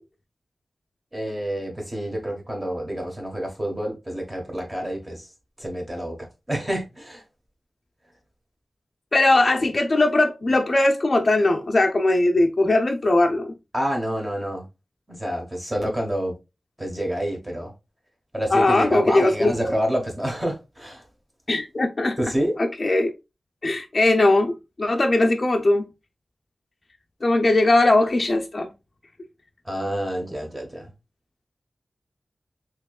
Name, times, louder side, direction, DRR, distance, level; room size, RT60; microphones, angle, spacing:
voice 1, 1.1-5.3 5.6-7.2 13.7-14.7 15.1-16.3 16.8-17.7 18.3-21.0 22.2-22.5 29.6-30.9, equal, 15° right, 1.1 m, -28 dB
voice 2, 9.1-13.5 18.5-19.5 21.5-22.2 22.6-23.1 23.6-25.9 27.2-28.7, left 2 dB, 40° left, 0.4 m, -20 dB
4.4 x 2.9 x 2.3 m
wide cardioid pair, 115°, 0 cm